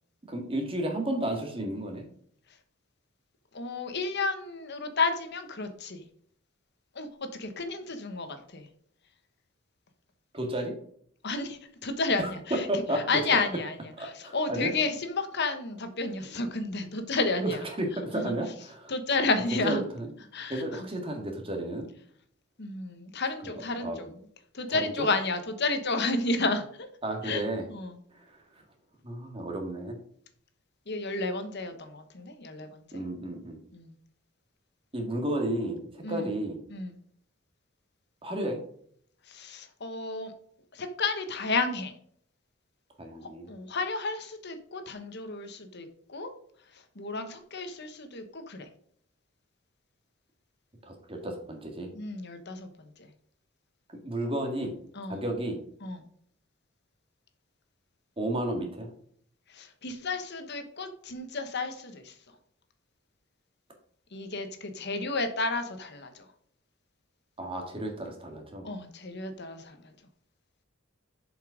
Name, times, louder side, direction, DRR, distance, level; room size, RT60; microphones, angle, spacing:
voice 1, 0.3-2.1 10.3-10.7 12.2-13.0 14.0-14.7 17.4-18.9 19.5-20.1 20.5-21.9 23.4-24.0 24.7-25.1 27.0-27.7 28.2-28.4 29.0-30.0 32.9-33.6 34.9-36.6 38.2-38.6 43.0-43.5 50.9-51.9 54.0-54.8 55.1-55.6 58.2-58.9 67.4-68.7, right 1 dB, 25° right, 3 dB, 1.9 m, -32 dB
voice 2, 3.5-6.0 6.9-7.1 7.4-8.7 11.2-12.7 12.9-17.6 18.1-18.3 18.9-19.8 20.3-20.8 22.6-24.1 24.5-26.9 27.2-27.4 27.7-28.0 30.9-33.0 33.7-33.9 36.0-36.3 36.7-37.0 39.3-40.3 40.7-41.9 43.5-46.3 46.7-48.7 51.9-53.1 54.9-55.2 55.8-56.0 59.5-62.1 64.1-66.3 68.6-69.9, left 3 dB, 55° left, 8 dB, 1.2 m, -32 dB
7.2 x 5.5 x 5.0 m, 0.62 s
head